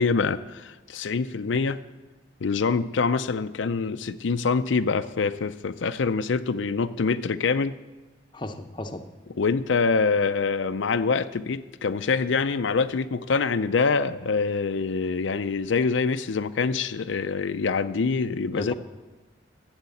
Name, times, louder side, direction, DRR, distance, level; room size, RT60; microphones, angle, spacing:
voice 1, 0.0-1.8 2.4-7.8 9.4-18.7, left 4 dB, 80° left, 10 dB, 0.5 m, -25 dB
voice 2, 8.3-9.0 18.5-18.7, left 1 dB, 25° left, 6 dB, 0.7 m, -34 dB
13.0 x 8.0 x 8.4 m, 1.2 s
head